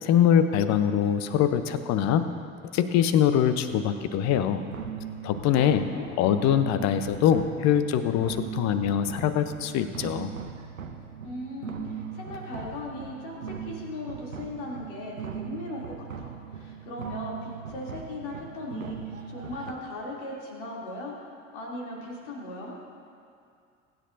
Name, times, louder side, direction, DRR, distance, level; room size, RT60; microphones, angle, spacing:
voice 1, 0.0-2.2 2.7-4.6 5.2-5.8 6.2-10.3, left 9 dB, 45° left, 10 dB, 0.9 m, -23 dB
sound 1, 4.2-19.7, right 7 dB, 85° right, 0.8 m, -39 dB
voice 2, 5.5-6.1 11.2-21.3 21.5-22.7, left 1 dB, 65° left, -3 dB, 3.2 m, -38 dB
22.5 x 10.5 x 2.7 m, 2.4 s
figure-of-eight pair, 65°, 39 cm